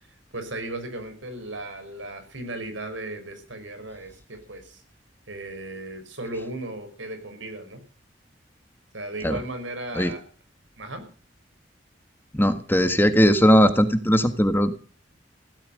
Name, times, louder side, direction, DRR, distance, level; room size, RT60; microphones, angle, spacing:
voice 1, 0.3-4.8 5.3-7.8 8.9-10.2 10.8-11.0, right 2 dB, 85° right, 8 dB, 5.6 m, -36 dB
voice 2, 12.3-14.7, equal, 10° left, 9 dB, 1.5 m, -19 dB
16.5 x 13.5 x 6.6 m, 0.39 s
head